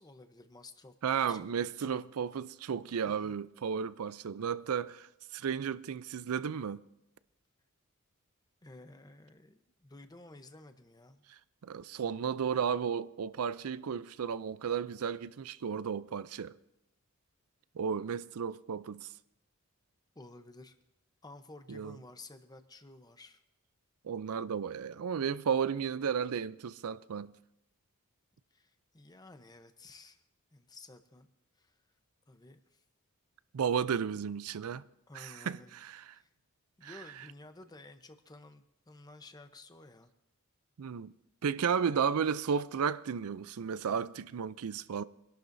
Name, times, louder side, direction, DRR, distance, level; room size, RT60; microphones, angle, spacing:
voice 1, 0.0-1.5 3.0-3.3 8.6-11.2 20.1-20.8 21.2-23.4 28.5-30.2 30.5-31.3 31.5-31.8 32.3-32.8 35.1-35.8 36.1-36.3 36.8-40.1, left 2 dB, 20° left, 0.8 m, -53 dB
voice 2, 1.0-6.8 11.6-16.5 17.8-19.1 21.7-22.0 24.0-27.3 33.5-34.8 35.1-36.1 36.8-36.9 40.8-41.1 41.4-45.0, right 7 dB, 80° right, 0.5 m, -33 dB
26.0 x 11.5 x 2.7 m
head